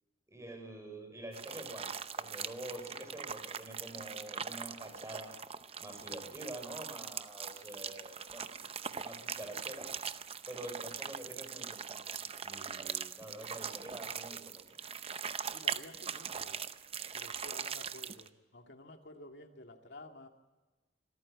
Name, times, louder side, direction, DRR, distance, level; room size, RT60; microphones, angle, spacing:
voice 1, 0.3-5.3 5.8-8.5 8.8-9.9 10.5-12.1 12.4-14.6, right 1 dB, 15° right, 5 dB, 5.1 m, -47 dB
sound 1, 1.3-18.3, right 7 dB, 35° right, 0.7 m, -41 dB
voice 2, 15.5-16.6 17.1-20.3, left 2 dB, 70° left, 4 dB, 2.3 m, -52 dB
26.0 x 14.0 x 8.8 m, 1.2 s
head